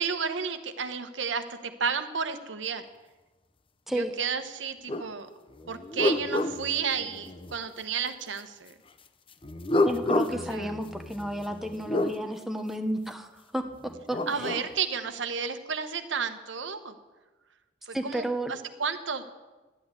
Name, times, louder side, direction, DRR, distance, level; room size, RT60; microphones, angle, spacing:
voice 1, 0.0-2.8 4.0-5.3 5.7-8.7 10.3-10.7 14.3-16.9 17.8-19.2, right 6 dB, 90° right, 9 dB, 1.0 m, -32 dB
sound 1, 4.9-5.1 5.6-7.6 9.4-12.2 13.9-14.7, left 2 dB, 30° left, 0.6 m, -30 dB
voice 2, 9.8-14.5 17.9-18.5, right 1 dB, ahead, 5 dB, 0.8 m, -32 dB
12.0 x 8.3 x 9.5 m, 1.2 s
head